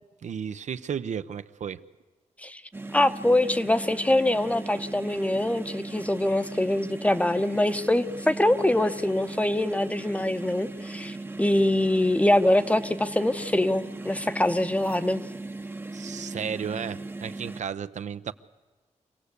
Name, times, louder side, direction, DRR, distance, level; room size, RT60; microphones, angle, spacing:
voice 1, 0.2-1.8 15.9-18.3, right 7 dB, 75° right, 12 dB, 0.8 m, -33 dB
sound 1, 2.7-17.6, right 2 dB, 15° right, 0.8 m, -38 dB
voice 2, 2.9-15.2, left 1 dB, 10° left, 12 dB, 0.8 m, -24 dB
25.0 x 17.5 x 8.3 m, 1.3 s
wide cardioid pair, 115°, 12 cm